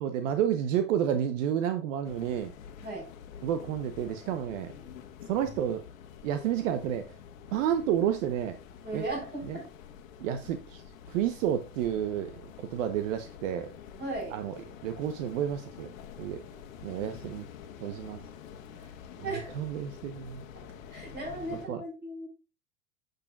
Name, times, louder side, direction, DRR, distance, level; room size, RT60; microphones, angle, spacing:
voice 1, 0.0-2.5 3.4-4.7 5.3-5.8 6.2-7.0 7.5-8.6 8.9-9.0 9.5-9.6 10.2-10.8 11.1-13.7 14.3-14.5 14.8-15.9 16.2-16.4 16.8-17.5 17.8-18.2 19.2-20.4 21.7-21.8, right 10 dB, 65° right, 1.0 m, -30 dB
sound 1, 2.0-21.7, left 7 dB, 70° left, 1.4 m, -48 dB
voice 2, 8.8-9.7 14.0-14.4 19.2-19.5 20.9-22.3, right 2 dB, 25° right, 4.9 m, -36 dB
9.8 x 6.8 x 2.4 m
hypercardioid pair, 110°, 41 cm